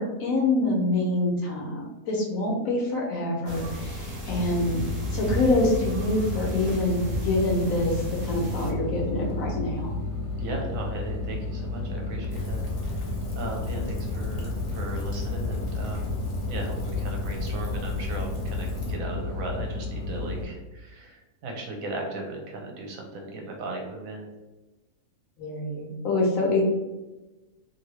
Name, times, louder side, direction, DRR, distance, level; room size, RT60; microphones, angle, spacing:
voice 1, 0.0-4.8 5.1-9.9 25.4-26.6, left 2 dB, 65° left, -1 dB, 1.0 m, -26 dB
sound 1, 3.5-8.7, right 1 dB, 45° right, 0.5 m, -35 dB
sound 2, 4.3-20.5, left 2 dB, 90° left, 1.1 m, -32 dB
voice 2, 10.4-13.1 13.4-16.1 16.4-24.3, right 2 dB, 65° right, 1 dB, 1.0 m, -37 dB
Rain, 12.3-18.9, left 3 dB, 45° left, 0.5 m, -35 dB
2.7 x 2.6 x 3.0 m, 1.1 s
omnidirectional pair, 1.7 m